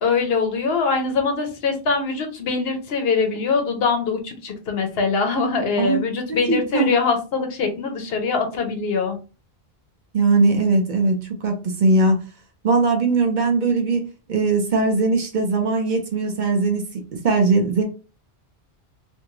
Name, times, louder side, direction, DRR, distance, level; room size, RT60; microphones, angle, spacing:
voice 1, 0.0-9.2, left 4 dB, 70° left, 0.9 m, -23 dB
voice 2, 6.3-7.0 10.1-12.2 12.6-17.8, right 3 dB, 55° right, 0.6 m, -20 dB
2.6 x 2.6 x 2.8 m
omnidirectional pair, 1.1 m